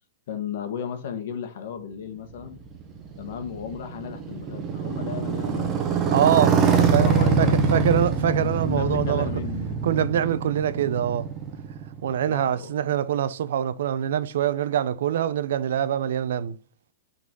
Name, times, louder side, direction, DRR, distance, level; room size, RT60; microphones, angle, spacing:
voice 1, 0.3-2.6 3.2-5.8 6.7-9.8 12.3-12.8, left 7 dB, 60° left, 1.6 m, -35 dB
Motorcycle, 2.4-12.3, right 5 dB, 25° right, 1.1 m, -24 dB
voice 2, 6.1-6.6 6.9-7.1 7.4-9.3 9.8-11.3 12.0-16.6, right 10 dB, 70° right, 0.6 m, -24 dB
6.1 x 4.0 x 5.3 m
supercardioid pair, 160°, 0 cm